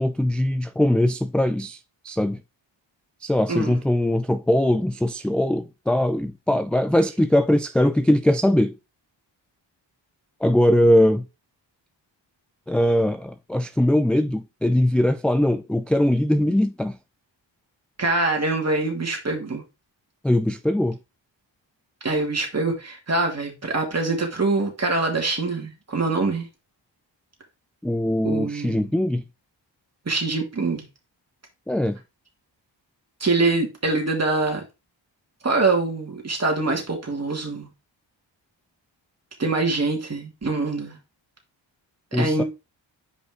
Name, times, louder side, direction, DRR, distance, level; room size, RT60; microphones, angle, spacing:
voice 1, 0.0-1.8 2.0-2.4 3.2-8.7 10.4-11.2 12.7-17.0 20.2-21.0 27.8-29.2 31.7-32.0 42.1-42.4, left 1 dB, 5° left, 0.3 m, -21 dB
voice 2, 18.0-19.6 22.0-26.5 28.2-28.9 30.1-30.9 33.2-34.6 35.4-37.7 39.4-41.0 42.1-42.4, right 3 dB, 35° right, 2.5 m, -24 dB
5.5 x 5.0 x 3.8 m
wide cardioid pair, 90°, 46 cm